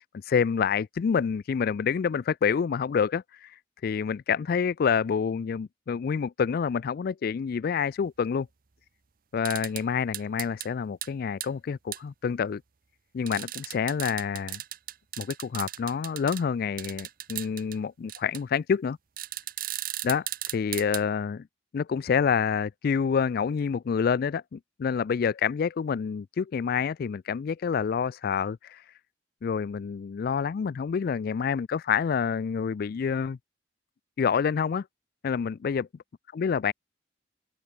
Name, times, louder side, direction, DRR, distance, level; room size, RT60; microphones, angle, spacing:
voice 1, 0.0-3.5 3.8-8.5 9.3-12.6 13.1-14.6 15.2-19.0 20.0-20.3 20.5-21.5 21.7-28.8 29.4-33.4 34.2-34.9 35.2-35.9 36.3-36.7, left 6 dB, 55° left, 0.3 m, -27 dB
sound 1, 9.5-9.8 10.1-10.7 11.0-11.1 11.4-11.5 11.9-12.0 13.3-16.4 16.8-17.8 18.1-18.4 19.2-21.0, right 14 dB, 50° right, 0.8 m, -36 dB
open air
head